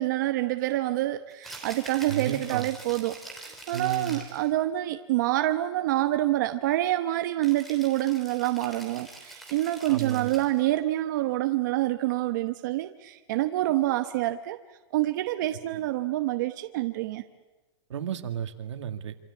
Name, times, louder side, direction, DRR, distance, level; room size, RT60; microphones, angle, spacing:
voice 1, 0.0-3.1 3.4-14.6 14.9-17.2, right 15 dB, 40° right, 8 dB, 1.0 m, -27 dB
Rattle (instrument), 1.3-4.5 7.4-10.6, right 2 dB, ahead, 3.0 m, -45 dB
voice 2, 2.1-2.7 3.7-4.2 9.9-10.4 17.9-19.2, right 8 dB, 80° right, 8 dB, 2.1 m, -33 dB
27.0 x 25.5 x 8.4 m, 1.1 s
supercardioid pair, 175°, 15 cm